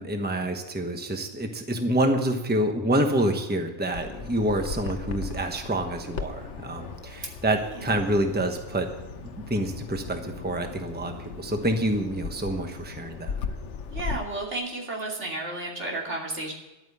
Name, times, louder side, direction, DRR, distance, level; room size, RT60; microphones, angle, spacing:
voice 1, 0.0-8.9 9.4-13.4, right 1 dB, 10° right, 5 dB, 1.1 m, -27 dB
Bird vocalization bird call bird song, 3.9-14.2, left 5 dB, 80° left, 1.2 m, -37 dB
voice 2, 13.9-16.5, right 2 dB, 80° right, -2 dB, 3.2 m, -32 dB
12.0 x 9.0 x 8.1 m, 1.1 s
omnidirectional pair, 1.2 m